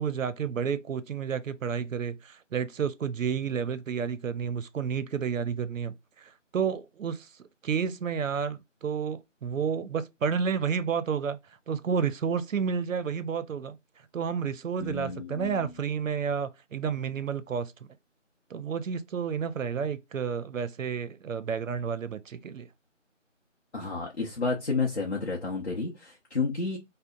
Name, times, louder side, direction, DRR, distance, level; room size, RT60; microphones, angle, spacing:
voice 1, 0.0-11.4 11.7-13.8 14.1-17.7 18.5-22.7, right 6 dB, 85° right, 0.5 m, -31 dB
voice 2, 14.8-15.5 23.7-26.8, left 4 dB, 55° left, 0.6 m, -31 dB
2.7 x 2.0 x 2.3 m
figure-of-eight pair, 175°, 38 cm